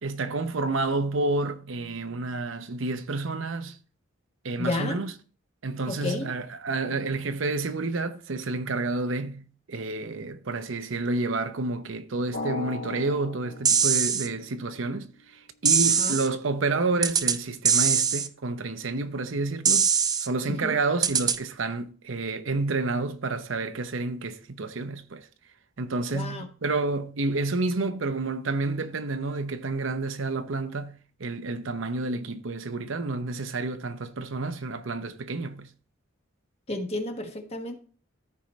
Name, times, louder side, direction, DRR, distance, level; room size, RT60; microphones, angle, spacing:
voice 1, 0.0-3.8 4.4-5.1 5.6-19.9 20.2-25.3 25.8-35.7, right 3 dB, 75° right, 0.8 m, -30 dB
voice 2, 4.6-5.0 5.9-6.3 15.8-16.2 20.5-20.8 26.1-26.4 36.7-37.8, left 2 dB, 30° left, 1.3 m, -31 dB
Drum, 12.3-14.9, left 3 dB, 75° left, 1.4 m, -37 dB
sound 1, 13.7-14.3 15.7-16.3 17.0-17.4 17.7-18.3 19.7-20.3 21.0-21.4, right 6 dB, 20° right, 0.4 m, -22 dB
14.0 x 4.8 x 3.2 m
head